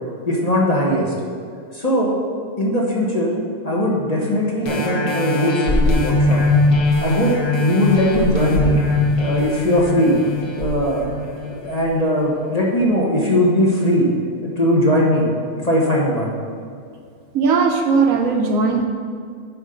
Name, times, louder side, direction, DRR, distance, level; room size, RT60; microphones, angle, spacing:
voice 1, 0.3-1.1 1.7-2.1 2.6-3.3 3.6-6.4 7.0-8.8 9.2-10.2 10.5-11.1 11.4-14.1 14.4-15.3 15.6-16.3, equal, 30° left, -3 dB, 1.0 m, -19 dB
sound 1, 4.7-11.8 12.4-12.5, left 2 dB, 55° left, 1.6 m, -20 dB
voice 2, 17.3-18.8, right 4 dB, 60° right, 3 dB, 1.1 m, -17 dB
9.5 x 4.3 x 5.1 m, 2.3 s
omnidirectional pair, 1.7 m